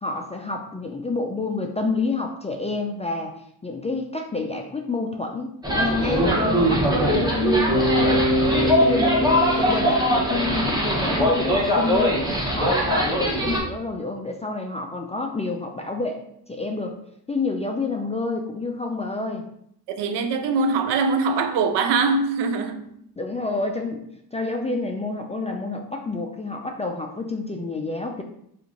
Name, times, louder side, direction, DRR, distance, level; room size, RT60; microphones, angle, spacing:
voice 1, 0.0-3.3 3.6-8.3 8.6-12.2 12.5-17.0 17.3-19.4 23.2-24.0 24.3-28.2, left 3 dB, 15° left, 0.3 m, -28 dB
sound 1, 5.6-13.6, equal, 10° right, 0.9 m, -21 dB
Bass guitar, 7.7-11.6, equal, 60° right, 1.1 m, -25 dB
voice 2, 19.9-22.9, right 4 dB, 90° right, 0.5 m, -22 dB
2.9 x 2.5 x 3.7 m
cardioid pair, 70°, 41 cm